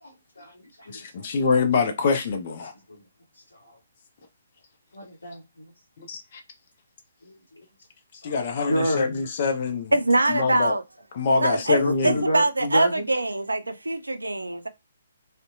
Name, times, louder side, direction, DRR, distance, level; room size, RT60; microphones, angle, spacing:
voice 1, 0.0-1.3 2.9-3.0 3.6-3.8 4.9-5.7 7.2-7.4 8.2-9.1 11.8-13.1, left 1 dB, 75° left, 0.7 m, -29 dB
voice 2, 0.9-2.7 6.0-6.4 8.1-9.9 10.3-10.8 11.1-12.2, left 4 dB, 40° left, 0.4 m, -25 dB
voice 3, 9.9-10.8 11.4-14.7, right 2 dB, 75° right, 0.4 m, -23 dB
2.6 x 2.1 x 2.5 m
figure-of-eight pair, 130°, 0 cm